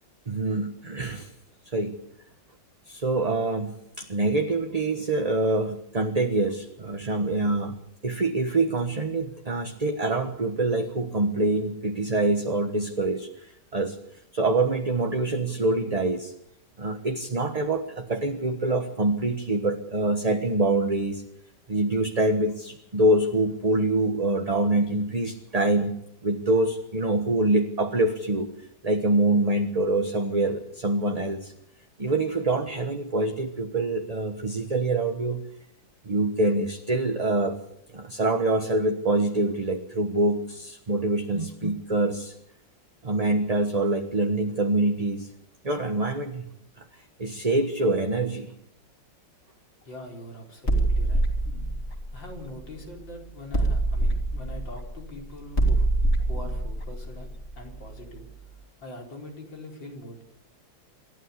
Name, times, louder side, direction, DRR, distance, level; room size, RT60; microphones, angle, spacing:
voice 1, 0.3-1.3 1.6-2.0 2.9-7.8 8.0-14.0 14.3-16.3 16.8-21.2 21.7-26.0 26.2-28.5 28.8-31.5 32.0-35.4 36.0-37.6 37.9-42.3 43.0-45.3 45.6-46.4 46.8-46.9 47.2-48.5, right 2 dB, 25° right, 5 dB, 1.2 m, -25 dB
voice 2, 49.8-51.2 52.1-55.9 56.2-60.2, left 1 dB, 90° left, 0 dB, 5.4 m, -43 dB
sound 1, 50.7-53.0 53.5-58.2, right 2 dB, 35° left, 3.6 m, -25 dB
27.0 x 12.5 x 8.4 m, 0.76 s
omnidirectional pair, 2.0 m